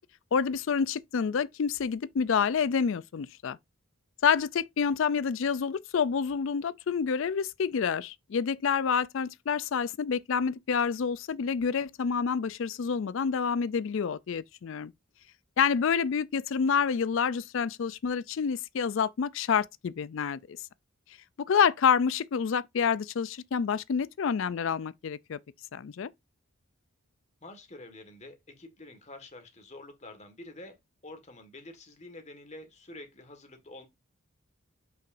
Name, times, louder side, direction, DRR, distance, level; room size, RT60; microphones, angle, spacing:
voice 1, 0.3-3.6 4.2-14.9 15.6-20.6 21.5-25.4 25.7-26.1, left 6 dB, 60° left, 0.4 m, -28 dB
voice 2, 27.4-30.8 31.0-33.9, left 2 dB, 30° left, 1.6 m, -47 dB
7.7 x 5.8 x 2.6 m
head